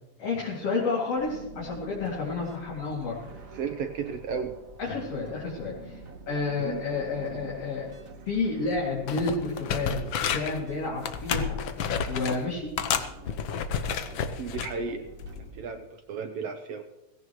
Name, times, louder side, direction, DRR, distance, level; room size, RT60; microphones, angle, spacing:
voice 1, 0.2-3.2 4.8-6.0 6.3-7.9 8.3-10.0 10.3-11.6 12.1-12.7, left 3 dB, 55° left, -5 dB, 3.6 m, -30 dB
sound 1, 1.2-15.6, right 3 dB, 50° right, 1.0 m, -47 dB
voice 2, 3.5-4.5 6.6-6.8 14.4-15.0 15.5-16.8, right 6 dB, 70° right, 6 dB, 1.6 m, -33 dB
sound 2, 8.7-8.8 9.1-10.6 11.0-12.4 12.8-14.7 15.2-15.4, left 7 dB, 80° left, 1.1 m, -30 dB
18.0 x 16.0 x 3.1 m, 0.98 s
omnidirectional pair, 3.3 m